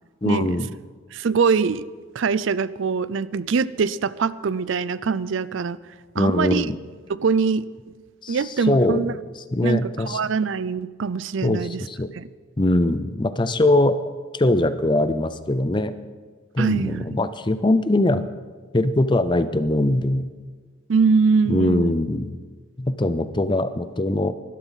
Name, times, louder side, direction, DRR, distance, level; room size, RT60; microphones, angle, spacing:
voice 1, 0.2-0.7 6.2-6.8 8.2-10.2 11.4-12.1 12.6-15.9 16.5-18.2 18.7-20.3 21.5-22.4 22.8-24.3, left 1 dB, 25° left, 12 dB, 0.6 m, -22 dB
voice 2, 1.1-1.9 2.1-5.8 6.2-6.7 7.1-7.7 8.3-9.1 9.6-11.8 12.2-12.3 16.6-17.2 20.9-21.9, right 5 dB, 65° right, 18 dB, 0.4 m, -23 dB
19.5 x 12.0 x 4.1 m, 1.5 s
head